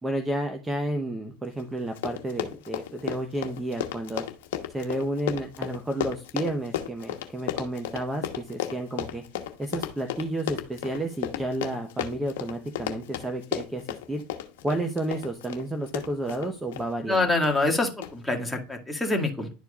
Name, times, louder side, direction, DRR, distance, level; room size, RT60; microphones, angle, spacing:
voice 1, 0.0-4.2 4.7-9.2 9.6-14.2 14.6-17.3, right 1 dB, 15° right, 5 dB, 1.0 m, -31 dB
Run, 1.6-1.7 1.9-16.9 17.4-17.7 18.0-18.1, left 11 dB, 80° left, 1.1 m, -33 dB
voice 2, 17.1-19.5, left 2 dB, 5° left, 1 dB, 1.9 m, -25 dB
11.0 x 4.5 x 2.4 m, 0.32 s
hypercardioid pair, 95°, 0 cm